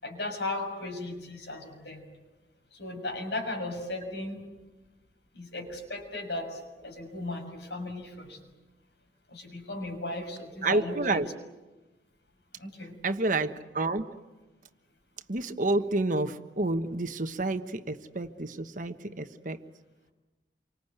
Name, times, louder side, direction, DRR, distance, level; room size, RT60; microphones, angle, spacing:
voice 1, 0.0-2.0 2.7-4.4 5.3-8.4 9.3-11.2 12.6-13.0, left 2 dB, 70° left, 4 dB, 6.5 m, -36 dB
voice 2, 10.6-11.3 13.0-14.2 15.3-19.6, right 2 dB, 45° right, 9 dB, 1.2 m, -29 dB
28.5 x 25.0 x 8.2 m, 1.1 s
head